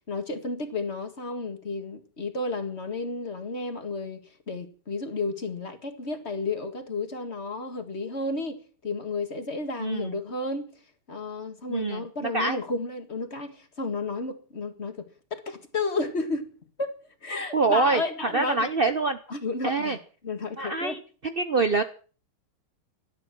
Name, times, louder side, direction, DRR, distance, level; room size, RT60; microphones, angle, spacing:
voice 1, 0.1-10.7 11.1-16.5 16.8-16.9 17.2-18.7 19.3-21.0, left 3 dB, 30° left, 1.9 m, -32 dB
voice 2, 9.8-10.2 11.7-12.0 12.3-12.6 17.5-18.0 18.3-19.2 19.6-20.0 20.6-21.8, right 3 dB, 85° right, 0.5 m, -25 dB
18.0 x 12.0 x 6.1 m
omnidirectional pair, 2.4 m